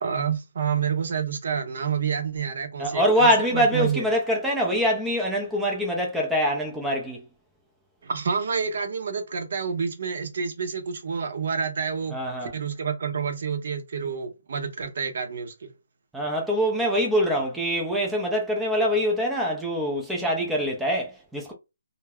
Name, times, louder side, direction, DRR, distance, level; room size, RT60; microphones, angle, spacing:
voice 1, 0.0-4.0 8.0-12.2 12.4-15.7, right 6 dB, 60° right, 0.7 m, -28 dB
voice 2, 2.8-7.2 12.1-12.5 16.1-21.5, equal, 5° right, 0.4 m, -24 dB
2.3 x 2.0 x 3.4 m
hypercardioid pair, 160°, 0 cm